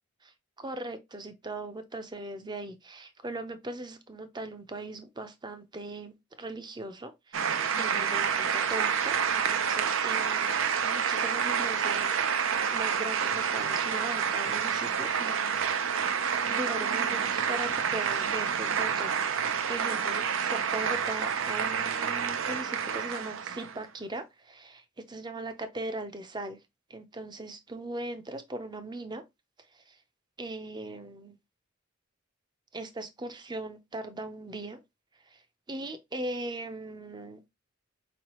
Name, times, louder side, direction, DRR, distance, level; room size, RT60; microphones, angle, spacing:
voice 1, 0.6-7.5 7.8-10.6 10.8-15.8 16.4-26.6 26.9-29.2 29.7-30.0 30.4-31.4 32.7-34.8 35.3-35.4 35.7-37.4, right 2 dB, 20° right, 0.6 m, -39 dB
sound 1, 7.3-23.8, right 7 dB, 70° right, 0.5 m, -28 dB
4.8 x 3.1 x 3.0 m
head